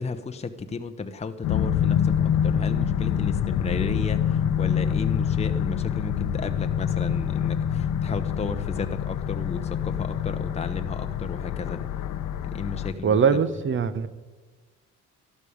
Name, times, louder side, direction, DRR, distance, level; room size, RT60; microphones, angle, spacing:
voice 1, 0.0-11.8 12.5-13.2, left 4 dB, 20° left, 7 dB, 0.8 m, -33 dB
sound 1, 1.4-12.9, left 9 dB, 85° left, 0.8 m, -26 dB
voice 2, 13.0-14.1, right 6 dB, 40° right, 15 dB, 0.9 m, -22 dB
12.5 x 12.0 x 5.1 m, 1.4 s
cardioid pair, 90°, 30 cm